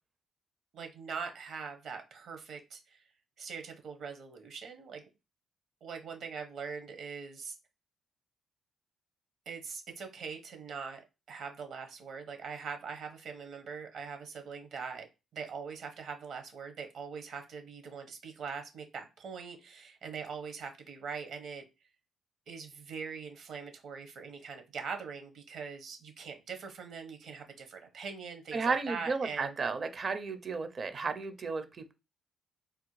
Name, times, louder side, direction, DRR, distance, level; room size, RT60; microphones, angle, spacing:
voice 1, 0.7-3.0 3.4-5.0 5.8-7.6 9.5-15.1 15.3-21.7 22.5-29.5, right 5 dB, 65° right, 6 dB, 1.0 m, -42 dB
voice 2, 28.5-31.9, right 4 dB, 40° right, 10 dB, 0.5 m, -33 dB
3.4 x 2.2 x 3.1 m, 0.27 s
cardioid pair, 90°, 0 cm